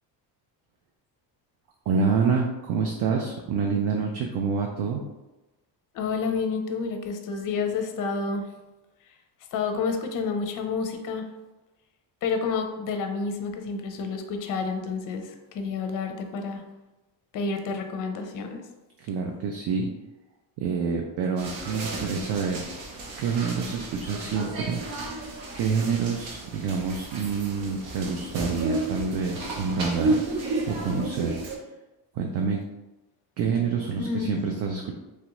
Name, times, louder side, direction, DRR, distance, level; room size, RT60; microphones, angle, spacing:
voice 1, 1.9-5.0 19.0-19.9 20.6-22.6 23.2-31.4 32.1-32.6 33.4-34.9, right 5 dB, 60° right, 1 dB, 0.5 m, -27 dB
voice 2, 5.9-8.5 9.5-11.3 12.2-16.6 17.3-18.6 34.0-34.6, left 4 dB, 45° left, 5 dB, 0.5 m, -29 dB
sound 1, 21.4-31.6, right 2 dB, 90° right, 0.8 m, -32 dB
3.1 x 2.4 x 2.9 m, 1.1 s
cardioid pair, 130°, 45 cm